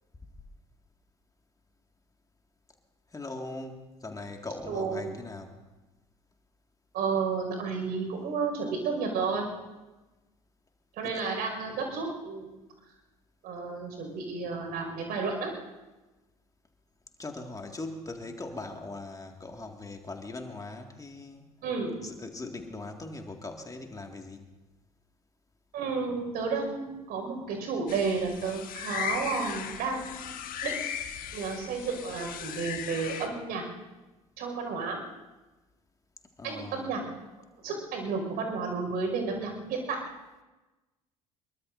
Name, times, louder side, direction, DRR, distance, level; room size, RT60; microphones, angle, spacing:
voice 1, 3.1-5.6 11.0-11.2 17.2-21.5 22.0-24.4 36.4-36.9, left 2 dB, 20° left, 3 dB, 1.9 m, -40 dB
voice 2, 4.6-5.1 6.9-9.5 11.0-12.6 13.4-15.5 21.6-22.0 25.7-30.3 30.6-30.8 31.3-33.6 34.4-35.0 36.4-37.0 37.6-40.0, right 4 dB, 60° right, 3 dB, 5.3 m, -32 dB
sound 1, 27.9-33.3, left 9 dB, 55° left, 1.5 m, -37 dB
24.5 x 22.5 x 2.6 m, 1.1 s
hypercardioid pair, 60°, 17 cm